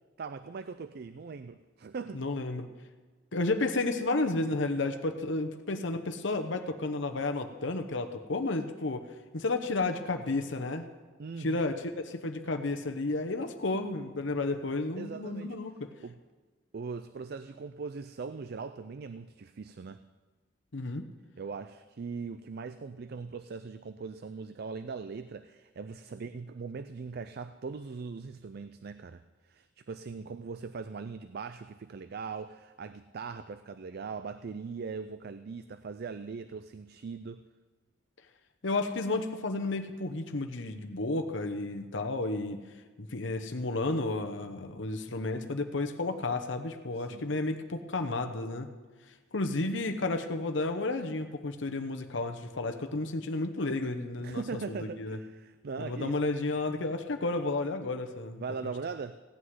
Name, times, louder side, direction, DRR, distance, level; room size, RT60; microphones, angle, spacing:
voice 1, 0.2-2.2 11.2-11.7 14.5-14.6 14.9-15.6 16.0-16.2 16.7-20.0 21.4-37.4 47.0-47.3 54.2-56.2 58.4-59.2, right 5 dB, 55° right, 12 dB, 0.4 m, -40 dB
voice 2, 2.1-2.7 3.3-9.1 9.3-10.9 11.4-15.9 20.7-21.1 38.6-42.6 43.0-48.7 49.3-54.4 54.7-55.2 55.8-58.7, left 2 dB, 65° left, 6 dB, 0.9 m, -32 dB
16.5 x 6.2 x 9.5 m, 1.3 s
head